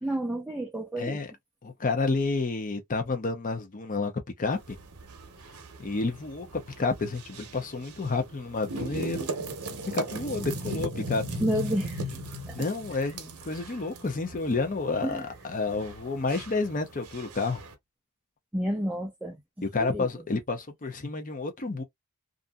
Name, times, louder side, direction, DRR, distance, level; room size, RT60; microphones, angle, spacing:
voice 1, 0.0-1.2 11.4-12.1 12.5-12.7 12.9-13.1 15.0-15.3 18.5-19.4 19.8-20.1, right 1 dB, 5° right, 0.4 m, -30 dB
voice 2, 1.0-1.3 1.6-4.1 4.4-4.8 5.8-9.5 9.9-11.4 12.5-17.6 19.7-21.8, left 3 dB, 35° left, 0.6 m, -30 dB
sound 1, 4.5-17.7, right 1 dB, 75° right, 0.8 m, -38 dB
2.6 x 2.5 x 2.2 m
head